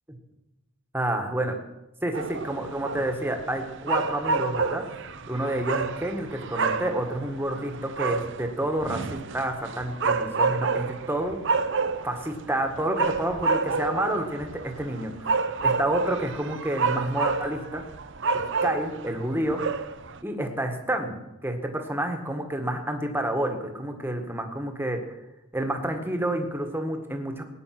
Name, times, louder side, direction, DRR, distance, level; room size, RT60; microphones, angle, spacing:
voice 1, 0.9-1.6 2.0-4.8 5.3-11.4 12.0-17.8 18.3-19.6 20.2-21.2 21.4-25.0 25.5-27.4, right 1 dB, 10° right, 4 dB, 1.7 m, -29 dB
sound 1, 2.1-20.2, right 4 dB, 55° right, 0.8 m, -29 dB
19.0 x 9.6 x 6.1 m, 0.97 s
head